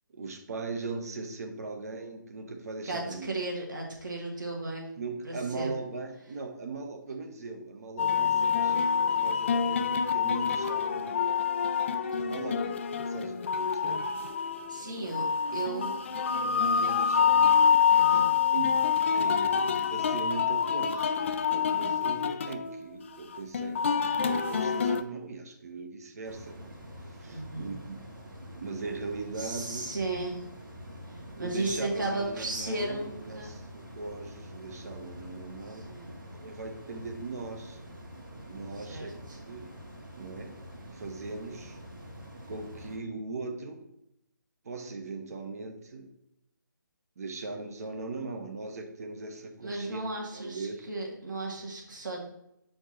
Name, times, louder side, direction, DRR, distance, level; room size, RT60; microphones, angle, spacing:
voice 1, 0.1-3.3 5.0-11.2 12.2-14.0 15.0-15.1 15.4-15.6 16.3-17.7 18.0-18.2 18.5-18.8 19.1-21.2 21.5-26.8 27.1-28.1 28.6-29.9 31.4-35.9 36.4-37.8 38.4-39.7 40.1-40.5 40.9-41.8 42.5-43.8 44.6-46.1 47.2-50.0 50.3-50.9, right 3 dB, 50° right, 5 dB, 0.9 m, -39 dB
voice 2, 2.8-4.9 5.2-5.8 14.7-16.0 17.9-18.3 27.3-27.7 29.4-30.4 31.1-33.5 35.7-36.1 38.7-39.4 49.6-52.3, right 2 dB, 70° right, -1 dB, 1.9 m, -35 dB
sound 1, 8.0-25.0, left 7 dB, 35° left, 0.3 m, -26 dB
sound 2, 26.2-43.0, equal, 90° right, 2.2 m, -46 dB
7.0 x 4.4 x 3.0 m, 0.81 s
figure-of-eight pair, 150°, 11 cm